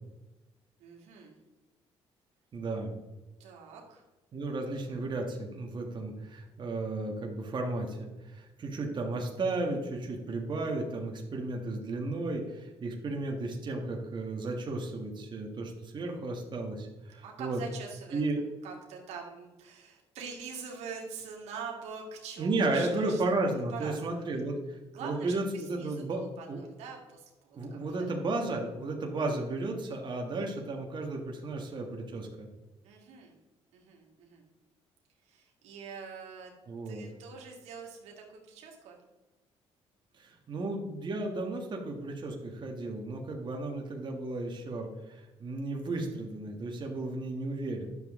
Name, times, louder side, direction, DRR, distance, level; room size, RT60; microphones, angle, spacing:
voice 1, 0.8-1.3 3.4-4.0 17.2-18.2 18.6-23.2 23.7-24.2 24.9-28.1 32.8-33.4 33.7-34.5 35.2-36.5 36.9-39.0, right 5 dB, 90° right, 0 dB, 1.9 m, -44 dB
voice 2, 2.5-2.9 4.3-17.6 18.1-18.4 22.4-26.6 27.5-32.5 36.7-37.1 40.2-47.9, right 2 dB, 45° right, 1 dB, 1.6 m, -34 dB
10.5 x 6.9 x 3.7 m, 1.1 s
cardioid pair, 95°, 11 cm